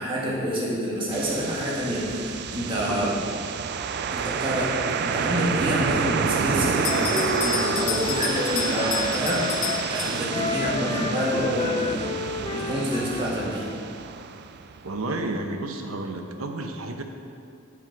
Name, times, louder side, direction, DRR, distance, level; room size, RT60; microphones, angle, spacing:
voice 1, 0.0-3.1 4.1-13.7, equal, 25° right, -5 dB, 1.6 m, -28 dB
sound 1, 1.1-15.0, right 6 dB, 50° right, 0.4 m, -29 dB
Bell, 6.8-10.6, left 7 dB, 85° left, 0.7 m, -31 dB
Wind instrument woodwind instrument, 6.8-9.8 10.3-13.8, left 3 dB, 25° left, 0.3 m, -31 dB
voice 2, 14.8-17.0, right 2 dB, 80° right, 4 dB, 0.8 m, -31 dB
7.6 x 5.8 x 4.6 m, 2.4 s
head